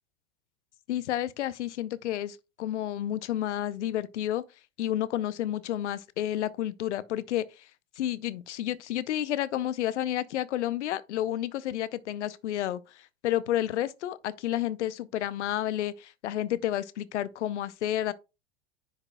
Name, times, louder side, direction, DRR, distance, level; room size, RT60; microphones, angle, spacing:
voice 1, 0.9-4.5 4.8-7.7 8.0-18.1, left 12 dB, 75° left, 0.6 m, -31 dB
9.9 x 4.8 x 2.2 m
hypercardioid pair, 95°, 35 cm